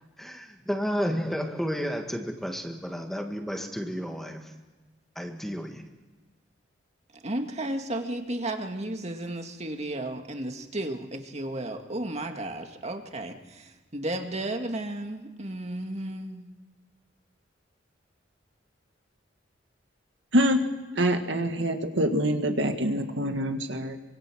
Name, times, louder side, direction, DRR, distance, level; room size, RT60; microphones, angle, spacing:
voice 1, 0.2-4.5 5.2-5.8, equal, ahead, 3 dB, 1.9 m, -32 dB
voice 2, 7.1-16.5, right 1 dB, 35° right, 5 dB, 2.2 m, -33 dB
voice 3, 20.3-20.6 21.0-24.0, equal, 75° right, 5 dB, 1.9 m, -25 dB
25.0 x 25.0 x 6.4 m, 1.2 s
head